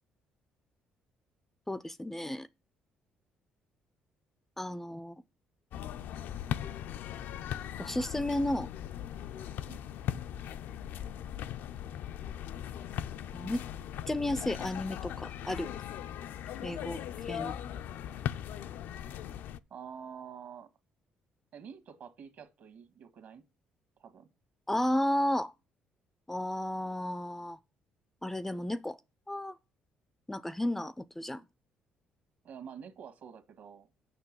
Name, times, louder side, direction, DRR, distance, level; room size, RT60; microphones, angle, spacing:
voice 1, 1.7-2.5 4.6-5.2 7.8-8.7 13.3-13.7 14.1-15.7 16.6-17.6 24.7-25.5 26.3-27.6 28.2-29.0 29.3-29.6 30.3-31.4, left 1 dB, 10° left, 0.4 m, -33 dB
sound 1, 5.7-19.6, left 10 dB, 75° left, 0.4 m, -39 dB
voice 2, 19.7-20.7 21.5-23.4 24.0-24.3 32.4-33.9, right 7 dB, 60° right, 1.5 m, -47 dB
6.8 x 5.9 x 7.2 m
cardioid pair, 115°, 3 cm